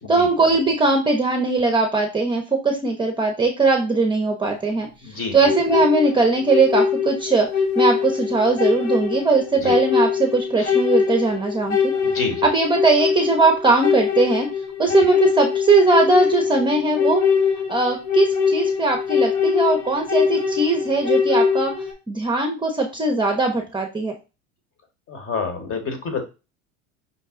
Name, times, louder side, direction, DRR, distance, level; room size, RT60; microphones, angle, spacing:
voice 1, 0.1-4.9 5.3-7.5 7.8-11.9 12.4-14.5 14.8-17.2 17.7-21.7 22.1-24.2, right 3 dB, 15° right, 2 dB, 0.7 m, -20 dB
voice 2, 5.0-5.5 9.6-9.7 10.6-10.7 12.0-12.5 15.0-15.1 25.1-26.2, left 4 dB, 35° left, 6 dB, 1.3 m, -29 dB
sound 1, 5.5-21.9, left 6 dB, 80° left, 1.2 m, -22 dB
5.6 x 2.2 x 3.6 m, 0.29 s
hypercardioid pair, 90°, 37 cm